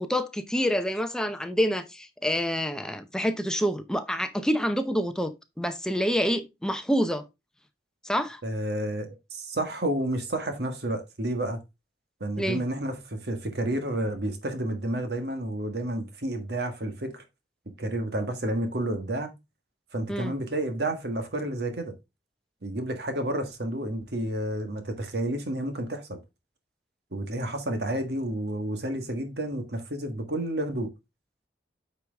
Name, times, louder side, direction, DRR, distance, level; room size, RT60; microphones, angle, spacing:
voice 1, 0.0-5.3 5.6-7.2 8.0-8.4 12.4-12.6 20.1-20.4, equal, 5° left, 0.7 m, -27 dB
voice 2, 8.4-11.6 12.2-17.2 17.8-19.3 19.9-21.9 22.6-26.2 27.1-30.9, right 1 dB, 70° right, 1.6 m, -30 dB
8.9 x 4.8 x 3.4 m
head